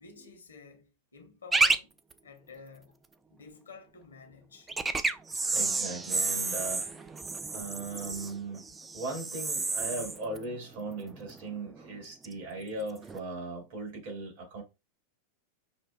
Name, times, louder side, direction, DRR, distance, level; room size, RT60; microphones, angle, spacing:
voice 1, 0.0-3.0 3.3-4.7, left 4 dB, 75° left, 1.0 m, -51 dB
sound 1, 1.5-1.8 2.1-2.2 4.7-11.5 11.8-12.3 13.0-13.2, right 3 dB, 15° right, 0.3 m, -31 dB
voice 2, 5.5-7.2 7.5-14.6, right 2 dB, 55° right, 2.0 m, -38 dB
5.7 x 2.5 x 2.3 m
figure-of-eight pair, 90°, 0 cm